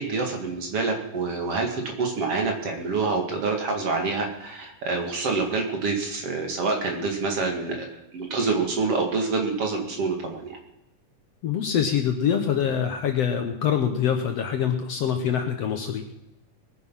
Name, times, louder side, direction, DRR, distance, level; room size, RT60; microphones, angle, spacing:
voice 1, 0.0-10.6, right 4 dB, 50° right, 3 dB, 2.9 m, -27 dB
voice 2, 11.4-16.0, left 8 dB, 60° left, 5 dB, 1.9 m, -25 dB
20.5 x 9.5 x 5.7 m, 0.86 s
omnidirectional pair, 3.7 m